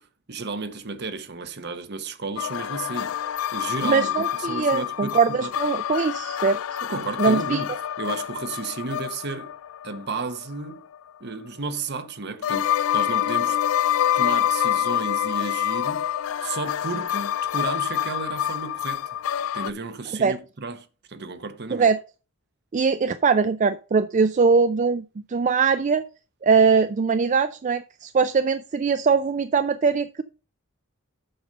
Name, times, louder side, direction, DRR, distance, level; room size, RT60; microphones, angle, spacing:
voice 1, 0.0-5.5 6.8-9.5 9.8-10.8 11.2-13.6 14.1-16.1 16.4-19.1 19.5-21.9, right 3 dB, 55° right, 1.0 m, -33 dB
sound 1, 2.4-11.0 12.4-19.7, left 10 dB, 80° left, 0.3 m, -27 dB
voice 2, 3.8-6.8 7.2-7.6 20.2-20.3 21.7-22.0 22.7-26.1 26.4-30.2, right 5 dB, 35° right, 0.4 m, -21 dB
7.9 x 5.3 x 5.3 m
head